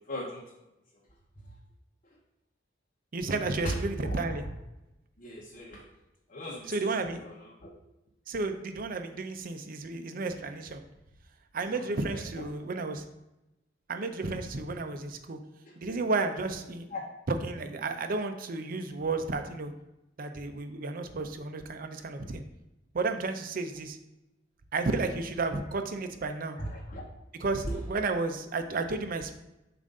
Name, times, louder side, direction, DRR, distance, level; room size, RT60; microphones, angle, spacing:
voice 1, 0.1-0.4 3.6-3.8 4.0-4.4 5.2-5.8 6.3-7.7 11.7-12.5 15.6-15.7 16.9-17.0 26.6-27.0 27.6-27.8, equal, 40° left, -3 dB, 0.8 m, -38 dB
voice 2, 3.1-4.4 6.7-7.2 8.3-10.8 11.5-13.0 13.9-15.4 15.8-16.9 17.3-19.7 20.2-22.4 22.9-24.0 24.7-26.6 27.4-29.3, right 3 dB, 50° right, 7 dB, 0.5 m, -32 dB
7.1 x 2.5 x 5.3 m, 0.94 s
head